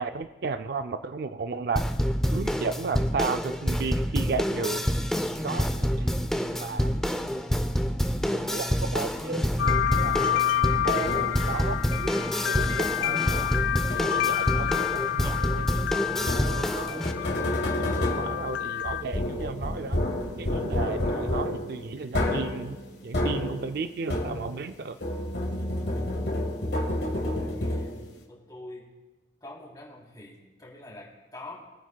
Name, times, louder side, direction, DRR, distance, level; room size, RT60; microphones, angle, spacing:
voice 1, 0.0-1.8 2.3-4.9 5.4-6.1 6.6-6.9 8.3-10.2 10.8-13.5 14.0-17.0 17.8-20.0 20.4-22.8 23.0-25.0, right 4 dB, 55° right, 9 dB, 0.4 m, -34 dB
sound 1, 1.8-17.1, equal, 5° left, 0.5 m, -27 dB
sound 2, 9.6-19.0, left 11 dB, 90° left, 0.3 m, -29 dB
sound 3, 11.1-11.6 12.6-13.0 13.9-14.5 16.2-24.7 25.0-28.2, left 1 dB, 60° left, 2.1 m, -30 dB
voice 2, 27.4-28.9 29.4-31.5, left 2 dB, 20° left, -4 dB, 3.2 m, -45 dB
23.0 x 9.4 x 2.3 m, 1.2 s
head